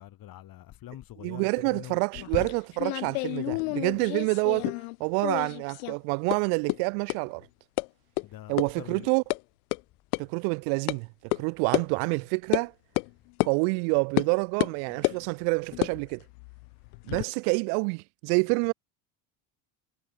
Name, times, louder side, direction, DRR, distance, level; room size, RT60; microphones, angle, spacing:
voice 1, 0.0-2.0 8.2-9.1, left 13 dB, 50° left, 5.3 m, -44 dB
voice 2, 1.2-4.7 5.0-7.5 8.5-9.2 10.2-12.7 13.4-16.2 17.1-18.7, right 40 dB or more, 80° right, 1.3 m, -27 dB
sound 1, 2.1-5.0 5.2-6.0 6.3-6.4 6.7-6.8 7.1-7.2 7.8-7.9 8.2-8.3 8.6-8.7 9.0-9.4 9.7-9.8 10.1-10.2 10.9-11.0 11.3-11.4 11.7-11.9 12.5-12.7 13.0-13.1 13.4-13.5 14.2-14.3 14.6-15.2 15.7-17.3, left 32 dB, 90° left, 0.5 m, -30 dB
supercardioid pair, 120°, 44 cm